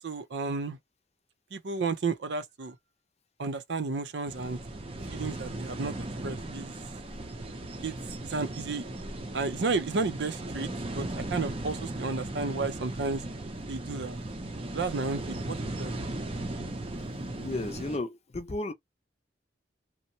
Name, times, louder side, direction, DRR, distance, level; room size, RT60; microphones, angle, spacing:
voice 1, 0.0-0.8 1.5-2.8 3.4-4.6 5.1-5.9 6.2-6.7 7.8-8.0 8.2-8.8 9.3-10.7 10.9-13.2 13.7-14.2 14.7-15.9, right 3 dB, 75° right, 0.5 m, -32 dB
sound 1, 4.3-18.0, right 1 dB, 30° right, 0.6 m, -37 dB
voice 2, 17.4-18.7, left 2 dB, 35° left, 0.6 m, -33 dB
2.8 x 2.1 x 2.6 m
head